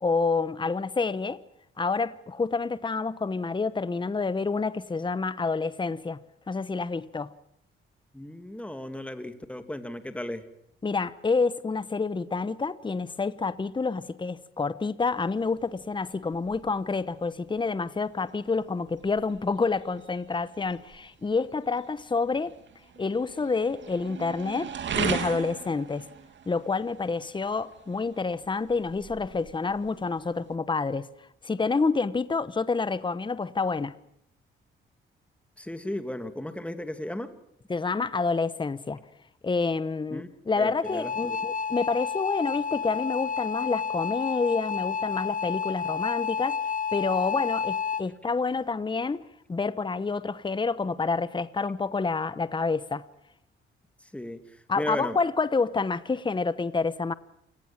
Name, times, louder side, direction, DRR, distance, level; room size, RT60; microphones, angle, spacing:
voice 1, 0.0-1.4 1.8-6.2 6.5-7.3 10.8-22.5 23.0-26.1 26.5-31.1 31.4-34.0 37.7-39.0 39.4-46.6 46.9-49.2 49.5-53.0 54.7-57.1, left 4 dB, 20° left, 1.1 m, -28 dB
voice 2, 8.1-10.4 35.6-37.3 40.1-40.3 40.6-41.4 54.1-54.4 54.8-55.2, left 1 dB, 5° left, 2.6 m, -35 dB
sound 1, 15.0-30.6, right 7 dB, 60° right, 2.9 m, -40 dB
sound 2, 40.8-48.0, left 6 dB, 40° left, 1.6 m, -30 dB
28.0 x 18.5 x 7.5 m
cardioid pair, 85°, 21 cm